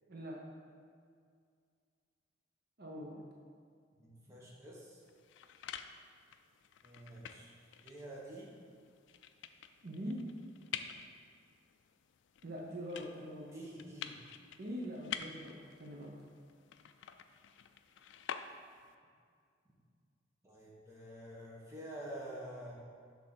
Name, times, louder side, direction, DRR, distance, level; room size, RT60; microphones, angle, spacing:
voice 1, 0.1-0.4 2.8-3.2 9.8-10.3 12.4-13.5 14.6-16.2, equal, 50° right, -3 dB, 0.7 m, -43 dB
voice 2, 4.0-5.0 6.8-7.5 7.8-8.5 13.5-14.1 20.4-22.7, right 1 dB, 15° right, -5 dB, 1.1 m, -48 dB
sound 1, 5.0-19.0, left 8 dB, 70° left, 0.3 m, -49 dB
6.3 x 3.6 x 5.9 m, 2.2 s
head